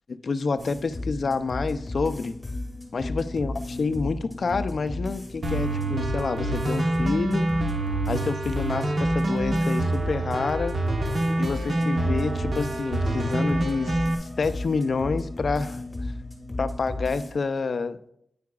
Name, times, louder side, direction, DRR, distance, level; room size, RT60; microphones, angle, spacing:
voice 1, 0.2-2.4 2.9-7.5 8.1-10.8 11.4-16.1 16.6-18.1, left 4 dB, 50° left, 11 dB, 0.4 m, -28 dB
sound 1, 0.6-17.3, left 2 dB, 15° left, 1.9 m, -34 dB
sound 2, 5.4-14.1, right 2 dB, 45° right, 1.1 m, -26 dB
9.4 x 9.2 x 2.4 m, 0.72 s
wide cardioid pair, 155°, 0 cm